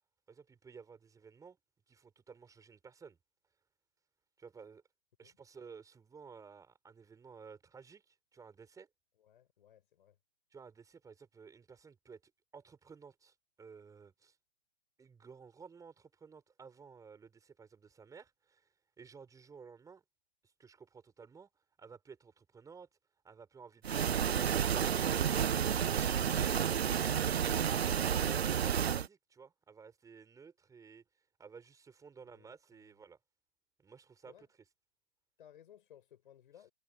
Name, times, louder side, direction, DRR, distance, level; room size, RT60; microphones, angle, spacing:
voice 1, 0.3-1.6 1.9-3.2 4.4-4.8 5.2-8.9 10.5-12.2 12.5-14.4 15.0-18.7 19.0-20.0 20.4-21.5 21.8-22.9 23.2-25.0 28.2-31.0 31.4-33.2 33.8-34.5, right 5 dB, 10° right, 5.7 m, -54 dB
voice 2, 9.2-10.2 32.3-32.9 34.2-34.5 35.4-36.7, left 10 dB, 50° left, 5.3 m, -60 dB
sound 1, 23.8-29.1, right 8 dB, 70° right, 0.6 m, -31 dB
figure-of-eight pair, 115°, 33 cm